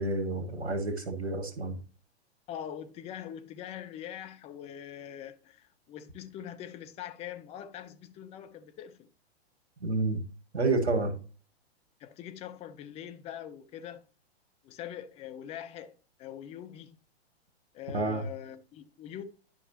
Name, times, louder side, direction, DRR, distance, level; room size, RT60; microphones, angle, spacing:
voice 1, 0.0-1.8 9.8-10.2 10.5-11.1 17.9-18.2, right 3 dB, 80° right, 1.7 m, -29 dB
voice 2, 2.5-9.1 12.0-14.0 14.6-15.9 16.2-16.9 17.7-19.2, left 10 dB, 20° left, 0.5 m, -43 dB
10.5 x 5.4 x 2.8 m
figure-of-eight pair, 110°, 33 cm